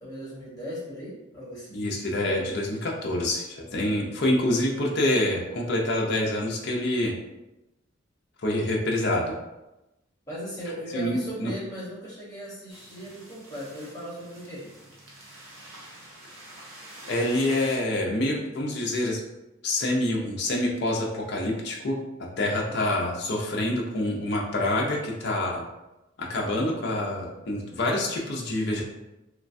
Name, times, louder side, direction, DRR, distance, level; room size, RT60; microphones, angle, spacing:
voice 1, 0.0-1.7 10.3-14.7 22.4-22.8, equal, 15° left, -8 dB, 1.0 m, -38 dB
voice 2, 1.7-7.1 8.4-9.3 10.9-11.5 17.1-19.2 19.6-25.6 26.2-28.8, left 1 dB, 55° left, -1 dB, 0.5 m, -26 dB
sound 1, 12.7-17.8, right 1 dB, 75° right, 0.7 m, -46 dB
3.1 x 2.2 x 2.5 m, 0.98 s
head